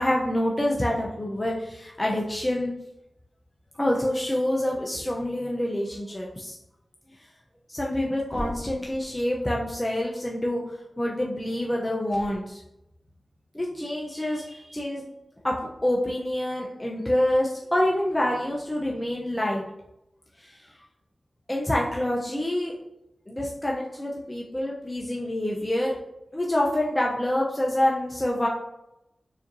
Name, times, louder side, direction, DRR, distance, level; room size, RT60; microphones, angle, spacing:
voice 1, 0.0-2.7 3.8-6.6 7.7-12.6 13.5-15.1 15.4-15.5 15.8-19.6 20.4-20.7 21.5-22.7 23.3-25.9 26.3-28.5, left 1 dB, 25° left, -3 dB, 0.7 m, -27 dB
sound 1, 8.3-9.2 12.0-12.4, left 1 dB, 60° left, 0.9 m, -37 dB
4.9 x 2.8 x 2.7 m, 0.87 s
cardioid pair, 45°, 0 cm